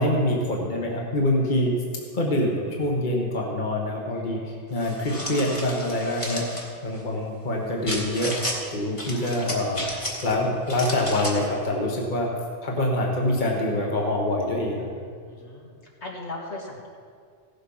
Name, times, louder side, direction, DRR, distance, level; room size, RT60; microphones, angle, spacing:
voice 1, 0.0-1.7 2.1-4.4 4.7-9.8 10.2-12.3 12.6-15.0, left 1 dB, 40° left, -1 dB, 1.6 m, -25 dB
voice 2, 4.1-4.7 7.1-7.3 9.1-9.6 15.3-16.9, left 2 dB, 70° left, -2 dB, 2.0 m, -40 dB
sound 1, 4.8-6.7 7.9-8.6 9.0-10.3 10.7-11.5, equal, 25° left, 1.8 m, -32 dB
16.0 x 7.5 x 5.6 m, 2.1 s
omnidirectional pair, 1.2 m